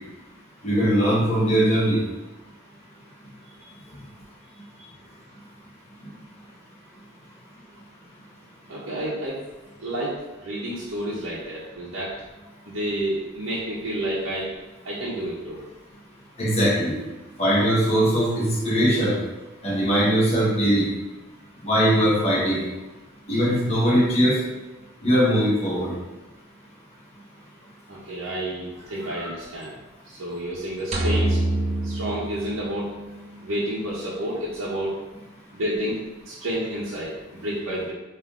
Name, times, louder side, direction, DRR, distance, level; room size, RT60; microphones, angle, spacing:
voice 1, 0.6-2.0 16.4-17.0 17.4-19.2 19.6-20.9 21.6-22.6 23.3-24.4 25.0-25.9 29.0-29.1, equal, 30° left, -5 dB, 1.0 m, -20 dB
voice 2, 8.7-9.4 9.8-12.2 12.7-14.5 14.8-15.6 27.9-29.7 30.1-31.4 31.8-32.9 33.4-35.0 35.5-36.0 36.2-37.9, right 1 dB, 80° right, -8 dB, 0.7 m, -30 dB
sound 1, 30.9-33.2, right 1 dB, 30° right, 0.5 m, -25 dB
3.5 x 2.5 x 3.5 m, 1.1 s
head